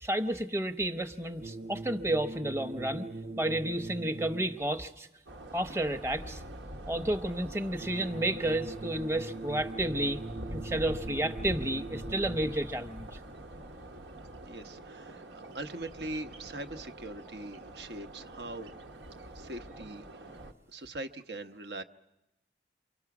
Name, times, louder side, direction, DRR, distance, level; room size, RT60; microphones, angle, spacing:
voice 1, 0.0-3.1 3.4-5.1 5.5-6.4 6.9-10.2 10.5-13.2, right 1 dB, 15° right, 9 dB, 0.9 m, -31 dB
sound 1, 1.4-4.8 7.8-12.8, right 2 dB, 50° right, 0.8 m, -41 dB
sound 2, 5.3-20.5, right 1 dB, 85° right, 1.3 m, -45 dB
voice 2, 14.4-18.7 19.3-20.3 20.7-21.8, right 2 dB, 70° right, 9 dB, 1.0 m, -41 dB
29.5 x 24.5 x 6.0 m, 0.92 s
head